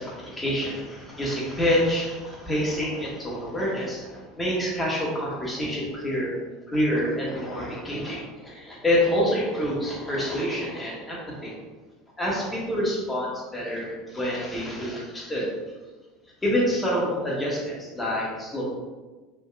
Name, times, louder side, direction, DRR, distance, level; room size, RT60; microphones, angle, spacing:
voice 1, 0.0-4.1 4.4-6.3 6.7-11.5 12.2-15.5 16.4-18.6, equal, 15° left, -5 dB, 1.4 m, -27 dB
5.0 x 3.5 x 2.4 m, 1.3 s
hypercardioid pair, 75°, 0 cm